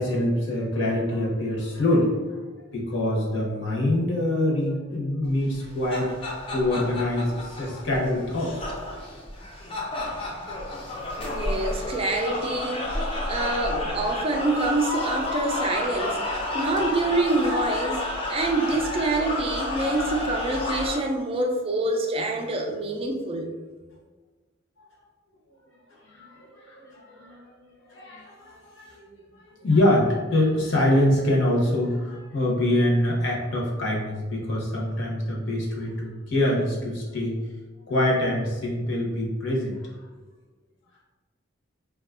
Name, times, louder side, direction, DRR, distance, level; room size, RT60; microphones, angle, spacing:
voice 1, 0.0-2.4 2.7-8.7 11.3-11.4 26.1-27.5 27.9-29.0 29.3-37.4 37.9-39.8, left 1 dB, 65° left, -3 dB, 0.9 m, -25 dB
sound 1, 5.5-21.0, left 2 dB, 30° left, 0.5 m, -31 dB
voice 2, 11.2-16.2 16.5-23.5, right 2 dB, 30° right, 3 dB, 0.4 m, -26 dB
3.6 x 2.3 x 2.4 m, 1.3 s
head